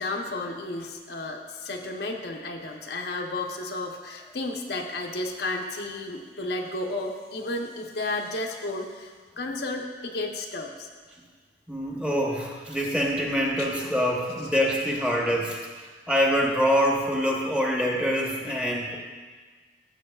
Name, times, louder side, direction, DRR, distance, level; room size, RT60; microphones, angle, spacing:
voice 1, 0.0-10.9 13.6-13.8, left 2 dB, 65° left, 2 dB, 0.8 m, -33 dB
voice 2, 11.7-15.6 16.1-19.0, equal, 5° right, -2 dB, 1.0 m, -25 dB
14.0 x 7.4 x 2.3 m, 1.5 s
head